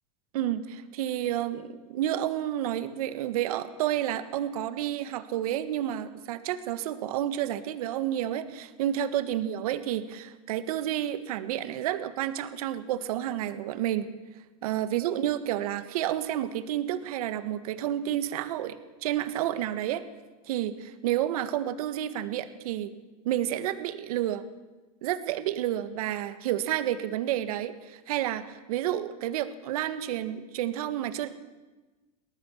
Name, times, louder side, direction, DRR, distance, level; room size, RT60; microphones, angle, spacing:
voice 1, 0.3-14.1 14.6-20.0 20.5-22.9 23.3-24.4 25.0-31.3, right 12 dB, 75° right, 11 dB, 1.7 m, -30 dB
21.5 x 18.0 x 7.3 m, 1.2 s
supercardioid pair, 115°, 19 cm